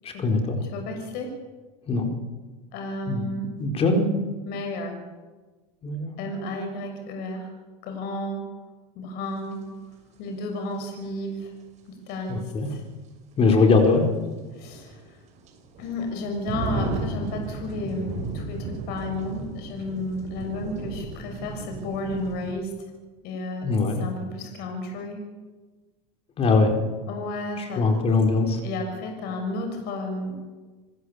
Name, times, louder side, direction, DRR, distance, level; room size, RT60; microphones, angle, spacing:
voice 1, 0.0-0.6 1.9-2.1 3.1-3.2 3.6-4.1 5.8-6.1 12.3-12.7 13.4-14.1 23.6-24.0 26.4-26.8 27.6-28.6, left 3 dB, 30° left, 4 dB, 4.5 m, -21 dB
voice 2, 0.7-1.3 2.7-3.4 4.4-5.0 6.2-7.5 7.8-8.4 8.9-9.6 10.2-11.5 12.1-12.4 12.7-12.8 14.6-15.0 15.8-22.7 23.2-23.6 24.0-25.2 27.1-27.8 28.6-30.3, left 1 dB, 55° left, 4 dB, 6.4 m, -32 dB
sound 1, 9.5-9.6 12.1-12.2 12.7-12.8 14.3-22.5, right 3 dB, 40° right, 6.7 m, -34 dB
27.5 x 15.5 x 8.2 m, 1.3 s
supercardioid pair, 125°, 19 cm